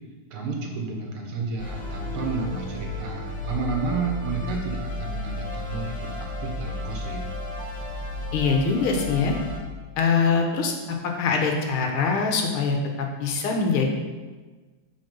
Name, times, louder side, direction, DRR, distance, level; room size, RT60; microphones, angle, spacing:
voice 1, 0.3-7.2, right 4 dB, 80° right, 1 dB, 2.3 m, -31 dB
sound 1, 1.6-9.6, left 2 dB, 5° left, 1.6 m, -33 dB
voice 2, 8.3-9.4 10.0-13.9, left 4 dB, 80° left, 2 dB, 2.0 m, -23 dB
9.5 x 4.9 x 5.3 m, 1.3 s
omnidirectional pair, 2.3 m